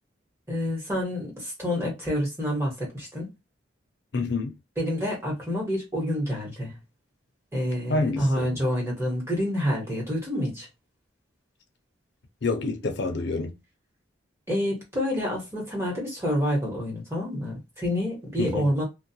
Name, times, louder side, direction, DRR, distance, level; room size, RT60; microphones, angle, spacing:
voice 1, 0.5-3.3 4.8-6.8 7.5-10.7 14.5-18.8, equal, 15° right, 1.1 m, -28 dB
voice 2, 4.1-4.5 7.9-8.6 12.4-13.6 18.4-18.7, left 3 dB, 60° left, 0.5 m, -28 dB
2.3 x 2.1 x 2.7 m
head